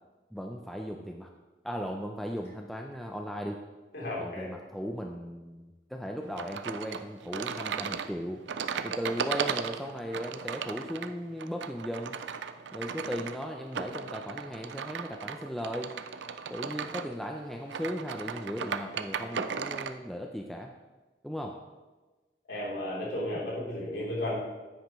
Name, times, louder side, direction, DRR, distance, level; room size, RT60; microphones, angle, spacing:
voice 1, 0.3-1.3 1.6-3.6 4.2-8.4 8.8-12.2 12.7-15.9 16.5-20.7 21.2-21.6 23.3-23.4, equal, ahead, 2 dB, 0.4 m, -37 dB
voice 2, 3.9-4.5 22.5-24.4, left 1 dB, 80° left, -6 dB, 3.3 m, -33 dB
sound 1, 6.4-20.0, right 6 dB, 85° right, 0.5 m, -36 dB
9.6 x 9.1 x 3.1 m, 1.2 s
head